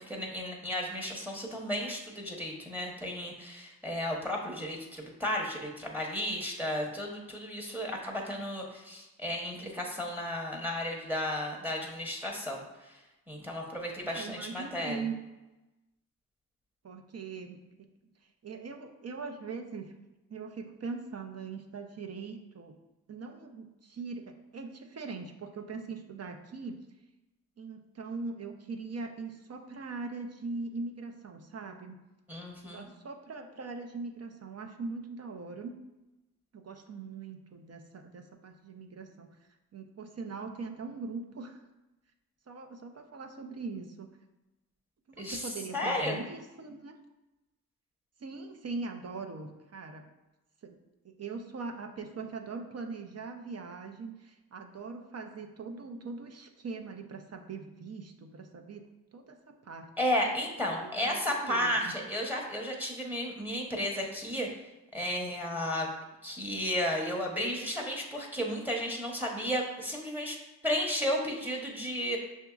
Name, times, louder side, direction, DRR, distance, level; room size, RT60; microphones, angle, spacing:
voice 1, 0.0-12.9 13.3-15.1 32.3-32.8 45.2-46.2 60.0-64.5 64.9-65.9 66.2-70.4 70.6-72.2, equal, 5° right, 0 dB, 0.9 m, -33 dB
voice 2, 14.0-15.2 16.8-17.9 18.4-19.9 20.3-22.7 23.1-26.7 27.6-32.0 32.6-35.7 36.5-39.3 39.7-41.6 42.5-44.1 45.1-47.0 48.2-50.0 50.6-50.8 51.0-58.8 59.1-59.4 59.6-59.9 60.6-61.9, right 4 dB, 40° right, 4 dB, 0.6 m, -41 dB
6.0 x 2.7 x 2.3 m, 1.0 s
supercardioid pair, 45°, 38 cm